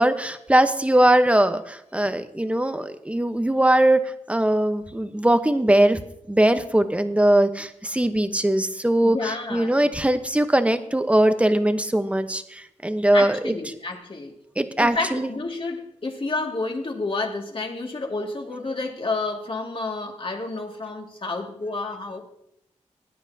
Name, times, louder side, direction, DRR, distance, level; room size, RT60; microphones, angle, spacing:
voice 1, 0.0-4.0 4.3-6.0 6.3-13.5 14.6-15.3, right 1 dB, 10° right, 9 dB, 1.0 m, -20 dB
voice 2, 9.0-9.9 13.1-14.3 14.8-22.2, left 3 dB, 45° left, 1 dB, 2.3 m, -30 dB
18.5 x 9.9 x 2.8 m, 0.77 s
cardioid pair, 70°, 13 cm